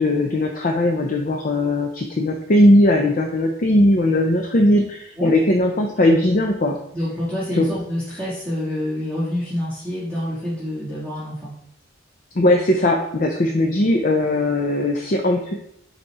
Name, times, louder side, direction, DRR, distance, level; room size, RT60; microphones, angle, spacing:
voice 1, 0.0-6.8 7.5-7.7 12.4-15.5, left 1 dB, 45° left, 2 dB, 0.6 m, -18 dB
voice 2, 6.9-11.5, left 1 dB, 10° left, -12 dB, 1.8 m, -27 dB
5.3 x 4.3 x 4.7 m, 0.75 s
head